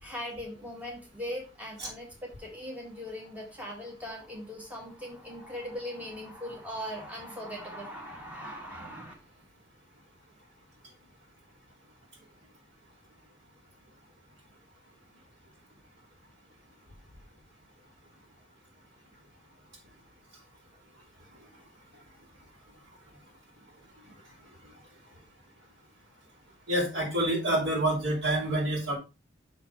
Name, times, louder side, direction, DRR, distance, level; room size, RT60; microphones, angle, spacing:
voice 1, 0.0-9.1, equal, 10° right, -2 dB, 1.9 m, -40 dB
voice 2, 26.7-29.0, right 1 dB, 70° right, -2 dB, 4.5 m, -27 dB
6.0 x 5.8 x 4.5 m, 0.28 s
head